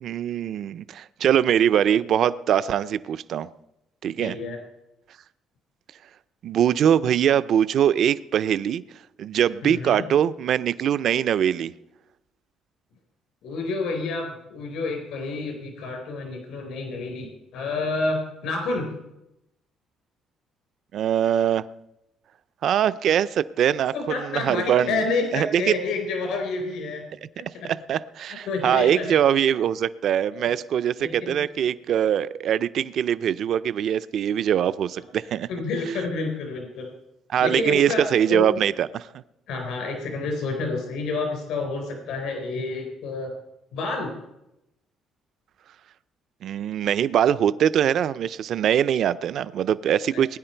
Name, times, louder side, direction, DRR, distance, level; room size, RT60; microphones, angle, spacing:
voice 1, 0.0-3.5 4.0-4.4 6.4-8.8 9.2-11.7 20.9-21.6 22.6-25.0 25.3-25.7 27.9-35.5 37.3-39.1 46.4-50.4, right 9 dB, 60° right, 0.5 m, -22 dB
voice 2, 4.2-4.6 9.6-10.1 13.4-18.9 23.9-27.0 27.4-27.7 28.5-29.1 30.3-30.5 31.0-31.4 35.5-36.9 37.4-38.5 39.5-43.3 43.7-44.1 50.1-50.2, left 3 dB, 80° left, 4.3 m, -29 dB
20.0 x 10.5 x 4.5 m
cardioid pair, 140°, 0 cm